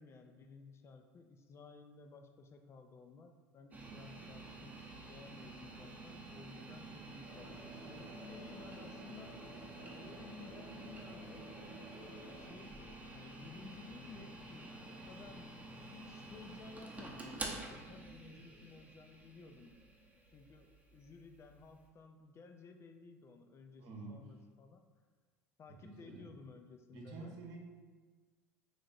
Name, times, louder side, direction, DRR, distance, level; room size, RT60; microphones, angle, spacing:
voice 1, 0.0-9.4 9.9-11.5 12.0-19.7 20.3-24.8 25.6-27.4, left 4 dB, 35° left, 5 dB, 0.4 m, -56 dB
sound 1, 3.7-21.8, right 2 dB, 20° right, 0.7 m, -49 dB
sound 2, 7.3-12.5, left 1 dB, 50° left, 0.9 m, -54 dB
voice 2, 23.8-24.3 25.8-26.3 26.9-27.6, right 3 dB, 60° right, 0 dB, 0.8 m, -49 dB
3.2 x 2.5 x 4.0 m, 1.4 s
hypercardioid pair, 80°, 8 cm